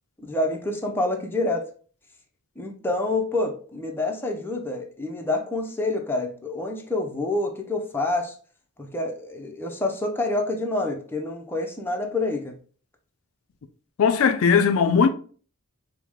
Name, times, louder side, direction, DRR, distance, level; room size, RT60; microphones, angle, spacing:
voice 1, 0.2-1.7 2.6-8.4 8.8-12.5, left 2 dB, 10° left, 0.5 m, -27 dB
voice 2, 14.0-15.1, left 6 dB, 65° left, 0.4 m, -18 dB
4.7 x 2.1 x 3.5 m
head